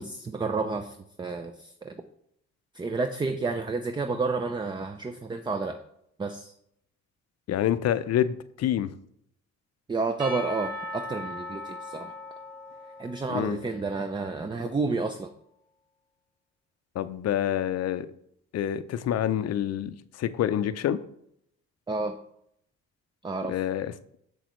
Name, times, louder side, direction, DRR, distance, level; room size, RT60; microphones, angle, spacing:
voice 1, 0.0-1.9 2.7-5.8 6.2-6.5 9.9-12.1 13.0-15.3 21.9-22.1 23.2-23.6, right 3 dB, 15° right, 8 dB, 0.4 m, -30 dB
voice 2, 7.5-8.9 13.3-13.6 17.0-18.1 18.5-21.0 23.5-23.9, left 10 dB, 55° left, 13 dB, 0.5 m, -27 dB
Percussion / Church bell, 10.2-14.5, left 1 dB, 70° right, 1.4 m, -39 dB
6.8 x 6.2 x 3.1 m, 0.72 s
cardioid pair, 90°, 30 cm